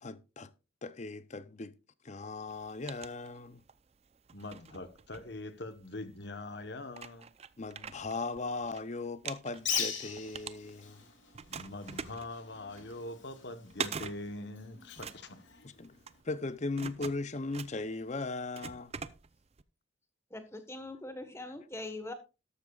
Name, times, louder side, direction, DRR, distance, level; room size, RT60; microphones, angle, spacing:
voice 1, 0.0-0.5 0.8-1.7 2.0-3.6 7.6-11.1 15.6-16.0 16.2-18.9, left 3 dB, 35° left, 0.6 m, -38 dB
sound 1, 2.5-3.8 4.3-5.9 6.5-6.6 6.9-8.8 9.1-11.0 11.3-19.6, right 6 dB, 30° right, 0.5 m, -44 dB
voice 2, 4.3-7.3 11.5-15.7, left 2 dB, 55° left, 1.1 m, -43 dB
Bird, 9.5-16.2, left 8 dB, 70° left, 2.9 m, -41 dB
voice 3, 20.3-22.1, left 2 dB, 15° left, 1.3 m, -42 dB
13.5 x 12.0 x 2.4 m
head